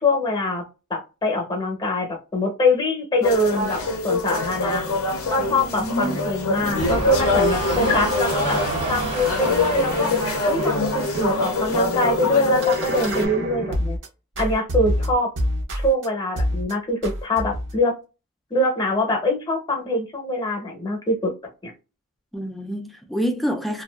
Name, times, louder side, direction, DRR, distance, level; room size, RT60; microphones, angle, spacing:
voice 1, 0.0-0.6 0.9-4.8 5.3-8.6 8.9-10.1 10.5-14.0 14.4-15.3 15.7-17.9 18.5-21.3 21.6-21.7, left 1 dB, 20° left, 0.7 m, -23 dB
sound 1, 3.2-13.3, left 3 dB, 65° left, 0.5 m, -24 dB
sound 2, 4.3-14.1 14.4-16.1 16.4-16.7 17.0-17.8, right 1 dB, 55° right, 0.6 m, -30 dB
voice 2, 5.7-6.2 22.3-23.8, equal, ahead, 0.3 m, -27 dB
sound 3, 6.7-11.9, right 2 dB, 80° right, 1.2 m, -30 dB
2.5 x 2.3 x 2.2 m
head